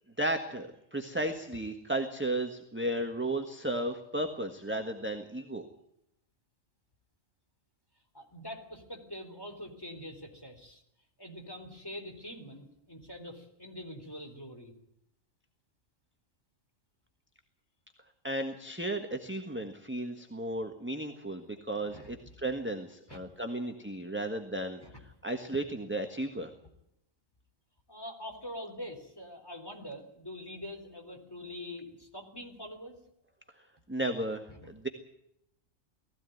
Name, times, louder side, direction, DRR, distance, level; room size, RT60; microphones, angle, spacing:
voice 1, 0.2-5.6 18.2-24.8 25.2-26.5 33.9-34.9, right 1 dB, 10° right, 5 dB, 1.5 m, -34 dB
voice 2, 8.1-10.8 11.2-14.7 21.9-22.2 23.1-23.2 24.8-25.0 27.9-33.0 34.5-34.7, left 1 dB, 15° left, 3 dB, 3.8 m, -44 dB
19.5 x 15.5 x 9.3 m, 0.80 s
omnidirectional pair, 1.3 m